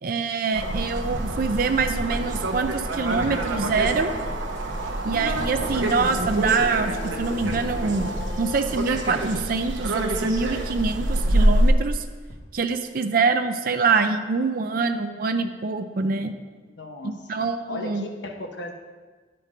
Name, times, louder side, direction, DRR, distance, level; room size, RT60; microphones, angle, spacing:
voice 1, 0.0-4.1 5.0-8.1 8.4-12.0 12.5-16.3 17.0-18.1, right 4 dB, 50° right, 7 dB, 0.5 m, -25 dB
sound 1, 0.5-11.7, right 1 dB, 85° right, 0.9 m, -26 dB
sound 2, 1.1-9.5, left 1 dB, 15° left, 1.9 m, -41 dB
sound 3, 3.4-10.2 10.6-12.3, left 1 dB, 55° left, 2.0 m, -39 dB
voice 2, 16.8-18.7, left 2 dB, 75° left, 3 dB, 1.0 m, -36 dB
9.8 x 4.6 x 5.1 m, 1.4 s
head